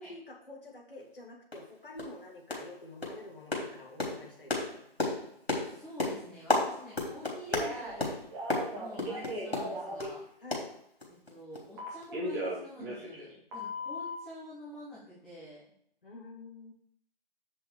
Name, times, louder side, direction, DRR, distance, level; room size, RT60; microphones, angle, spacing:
voice 1, 0.0-4.8 10.4-10.7 16.0-16.7, left 2 dB, 60° left, 0 dB, 2.5 m, -48 dB
sound 1, 1.0-1.1 1.5-1.7 2.0-2.2 2.5-2.8 3.0-10.2 10.5-11.3 11.5-11.7 12.0-12.1, left 2 dB, 80° left, 3.2 m, -34 dB
voice 2, 5.5-8.2 8.7-10.2 11.3-15.7, equal, 5° left, -10 dB, 1.2 m, -48 dB
Telephone, 7.5-8.0 8.3-10.1 11.8-13.3 13.5-14.2, equal, 20° right, 2.1 m, -37 dB
7.8 x 6.1 x 4.8 m, 0.67 s
figure-of-eight pair, 145°, 30 cm